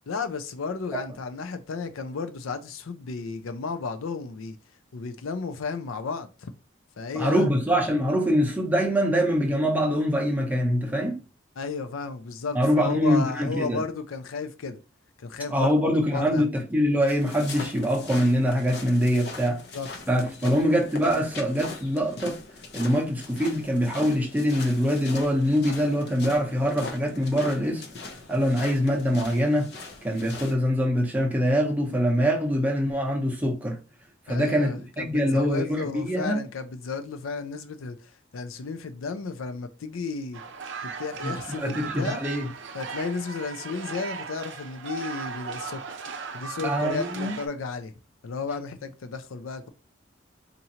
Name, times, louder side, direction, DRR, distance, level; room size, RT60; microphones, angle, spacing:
voice 1, 0.1-4.6 4.9-6.5 7.0-7.5 11.6-14.8 15.2-15.9 16.1-16.4 19.7-19.9 20.4-20.5 34.3-40.4 40.8-42.2 42.7-45.8 46.3-47.9 48.2-49.7, left 4 dB, 90° left, 0.5 m, -33 dB
voice 2, 7.1-11.2 12.5-13.8 15.5-19.6 20.1-22.4 22.7-27.8 28.3-29.7 30.0-33.8 34.3-36.4 41.2-42.5 46.6-47.4, equal, 10° right, 0.7 m, -24 dB
sound 1, 17.1-30.5, left 3 dB, 55° left, 0.7 m, -41 dB
sound 2, 40.3-47.5, right 5 dB, 65° right, 0.5 m, -37 dB
4.2 x 2.6 x 2.7 m
head